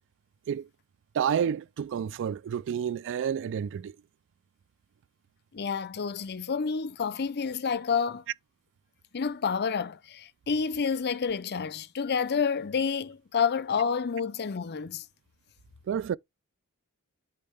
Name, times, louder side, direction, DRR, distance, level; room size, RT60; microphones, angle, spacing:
voice 1, 1.1-3.9 15.9-16.2, right 8 dB, 55° right, 0.3 m, -29 dB
voice 2, 5.5-8.2 9.1-15.0, left 6 dB, 50° left, 0.6 m, -29 dB
8.5 x 4.4 x 3.4 m
head